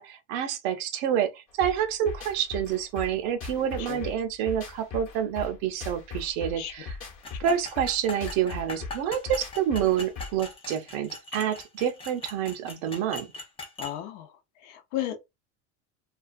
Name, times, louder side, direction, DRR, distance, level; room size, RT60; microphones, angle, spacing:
voice 1, 0.0-7.0 7.4-13.3, right 9 dB, 60° right, 0.6 m, -28 dB
sound 1, 1.6-10.5, left 4 dB, 35° left, 0.9 m, -39 dB
voice 2, 3.8-4.1 6.6-6.7 13.8-14.3 14.6-15.2, left 12 dB, 70° left, 0.7 m, -34 dB
sound 2, 7.2-14.0, left 2 dB, 15° left, 0.4 m, -41 dB
2.4 x 2.3 x 2.4 m
cardioid pair, 150°, 38 cm